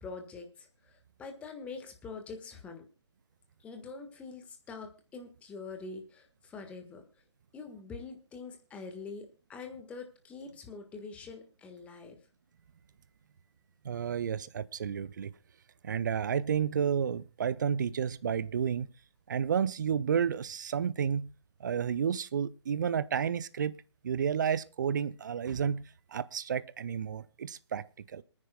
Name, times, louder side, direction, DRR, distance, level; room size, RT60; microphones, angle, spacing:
voice 1, 0.0-2.8 3.6-7.0 7.5-12.2, left 4 dB, 10° left, 1.5 m, -45 dB
voice 2, 13.8-15.3 15.8-18.9 19.3-21.3 21.6-23.8 24.0-25.8 26.1-27.8 28.1-28.2, right 7 dB, 40° right, 0.6 m, -31 dB
27.0 x 9.7 x 2.3 m
figure-of-eight pair, 140°, 15 cm